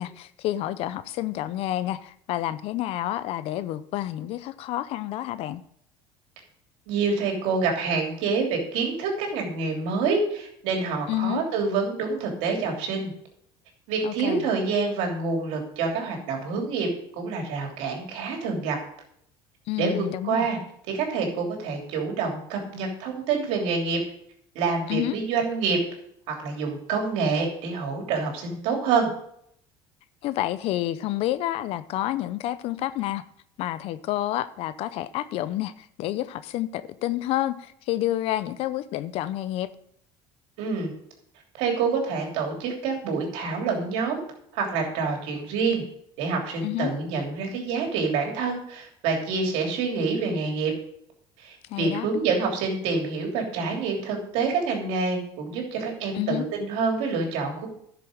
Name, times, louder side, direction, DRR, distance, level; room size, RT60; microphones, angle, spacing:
voice 1, 0.0-5.6 11.1-11.4 14.0-14.5 19.7-20.5 24.9-25.2 30.2-33.2 33.6-39.7 46.6-46.9 51.7-52.1 56.1-56.4, left 14 dB, 65° left, 0.6 m, -29 dB
voice 2, 6.9-13.1 13.9-16.9 17.1-18.8 19.8-20.6 20.9-24.0 24.5-25.8 26.3-29.1 40.6-40.9 41.6-44.2 44.5-45.8 46.2-50.7 51.4-57.7, right 4 dB, 80° right, 3.1 m, -27 dB
11.0 x 6.7 x 5.1 m
supercardioid pair, 100°, 11 cm